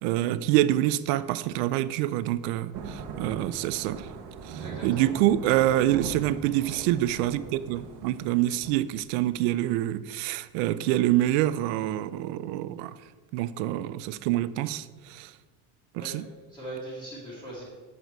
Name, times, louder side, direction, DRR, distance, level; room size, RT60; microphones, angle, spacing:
voice 1, 0.0-4.1 4.5-12.9 13.3-15.3 15.9-16.3, right 14 dB, 90° right, 0.5 m, -26 dB
Thunder / Rain, 2.7-8.7, right 5 dB, 55° right, 0.9 m, -40 dB
voice 2, 4.6-5.1 16.0-16.1 16.5-17.6, right 2 dB, 10° left, 1.8 m, -39 dB
8.1 x 6.3 x 4.5 m
cardioid pair, 170°, 34 cm